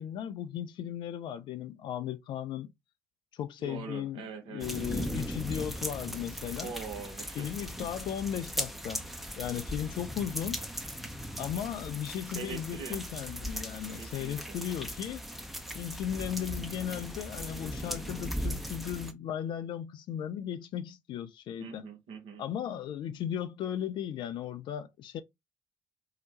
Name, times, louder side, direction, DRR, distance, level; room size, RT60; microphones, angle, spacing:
voice 1, 0.0-2.7 3.3-4.2 4.5-6.7 7.4-9.0 9.4-10.6 11.4-15.2 15.7-21.9 22.4-25.2, left 10 dB, 55° left, 0.4 m, -36 dB
voice 2, 3.6-4.9 6.6-7.5 12.3-13.0 14.0-14.6 21.6-22.4, right 5 dB, 60° right, 0.8 m, -43 dB
sound 1, 4.6-19.1, equal, ahead, 0.5 m, -38 dB
2.8 x 2.1 x 2.8 m
figure-of-eight pair, 45°, 10 cm